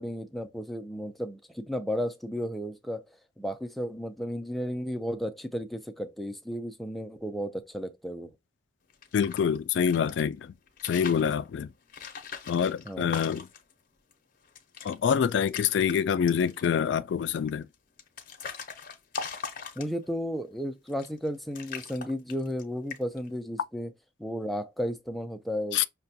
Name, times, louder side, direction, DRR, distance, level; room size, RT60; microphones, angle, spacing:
voice 1, 0.0-8.3 12.8-13.1 19.8-23.9 24.2-25.8, equal, ahead, 0.4 m, -34 dB
sound 1, 8.9-10.2 10.7-11.3 11.9-13.7 14.1-14.2 14.4-15.0 15.3-16.0 16.3-16.8 17.5-20.2 20.9-21.3 21.5-22.6 22.9-23.3, left 5 dB, 50° left, 0.7 m, -40 dB
voice 2, 9.1-10.5 10.8-11.7 12.5-13.5 14.8-17.7 25.7-25.8, left 7 dB, 75° left, 0.3 m, -26 dB
5.8 x 2.2 x 2.7 m
head